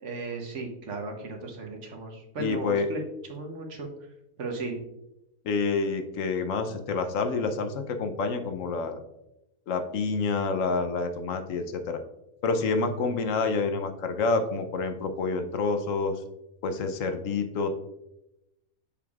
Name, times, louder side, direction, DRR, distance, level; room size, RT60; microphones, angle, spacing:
voice 1, 0.0-3.0 3.3-3.9 4.4-4.8, right 3 dB, 55° right, 2 dB, 1.2 m, -35 dB
voice 2, 2.4-2.9 5.4-9.0 9.7-12.0 12.4-16.2 16.6-17.7, left 4 dB, 70° left, 7 dB, 1.0 m, -28 dB
6.9 x 6.6 x 2.4 m, 0.89 s
omnidirectional pair, 1.5 m